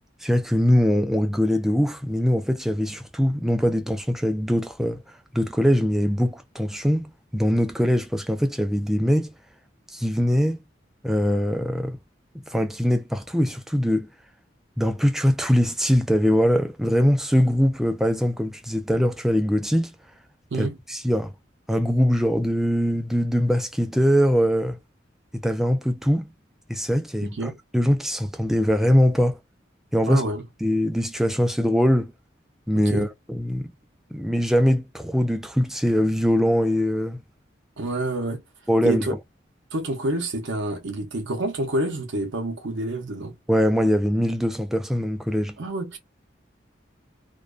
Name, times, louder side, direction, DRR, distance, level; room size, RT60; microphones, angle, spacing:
voice 1, 0.2-5.0 5.3-9.3 9.9-10.6 11.0-12.0 12.5-14.1 14.8-19.9 20.6-21.3 21.7-24.8 25.4-26.3 26.7-29.4 29.9-30.2 30.6-32.1 32.7-33.7 34.1-37.2 38.7-39.2 43.5-45.6, equal, ahead, 0.3 m, -22 dB
voice 2, 27.2-27.6 30.1-30.4 32.7-33.1 37.8-38.4 38.8-39.1 39.7-43.4 45.6-46.0, right 2 dB, 80° right, 0.6 m, -28 dB
2.5 x 2.2 x 2.2 m
head